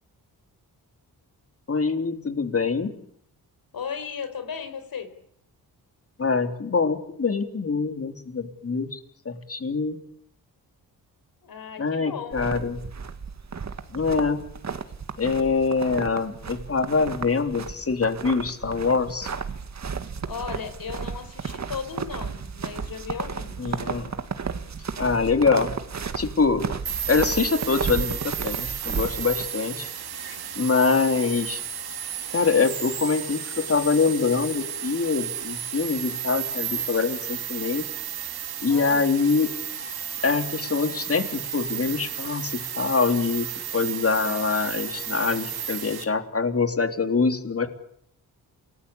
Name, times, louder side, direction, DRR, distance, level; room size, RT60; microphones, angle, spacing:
voice 1, 1.7-2.9 6.2-9.0 9.2-10.0 11.8-12.8 13.9-14.4 15.2-19.3 23.6-24.2 25.0-25.7 26.2-26.6 27.1-29.9 30.2-31.6 32.3-37.8 38.6-39.5 40.2-47.7, left 4 dB, 40° left, 7 dB, 3.4 m, -24 dB
voice 2, 3.7-5.1 11.4-12.4 20.2-23.8 38.7-39.1, left 6 dB, 65° left, 9 dB, 4.7 m, -36 dB
sound 1, 12.3-29.5, right 5 dB, 45° right, 2.1 m, -33 dB
sound 2, 26.9-46.0, right 8 dB, 75° right, 3.2 m, -33 dB
28.5 x 20.0 x 8.7 m, 0.70 s
cardioid pair, 90°, 38 cm